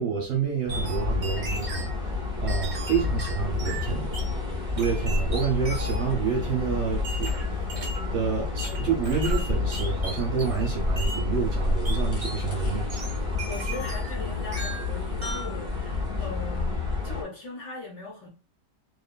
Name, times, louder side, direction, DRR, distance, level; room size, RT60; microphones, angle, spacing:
voice 1, 0.0-4.1 4.7-7.6 8.1-13.2, right 7 dB, 60° right, 0.9 m, -29 dB
sound 1, 0.7-17.2, left 3 dB, 20° left, 0.8 m, -29 dB
sound 2, 0.7-1.9 2.5-4.3 4.8-6.2 7.0-8.1 8.6-10.7 11.0-11.2 11.8-12.4 12.9-14.2 14.5-14.9 15.2-15.6, right 2 dB, 40° right, 0.5 m, -37 dB
voice 2, 13.4-18.3, left 2 dB, 55° left, 0.9 m, -39 dB
2.7 x 2.4 x 2.2 m
omnidirectional pair, 1.8 m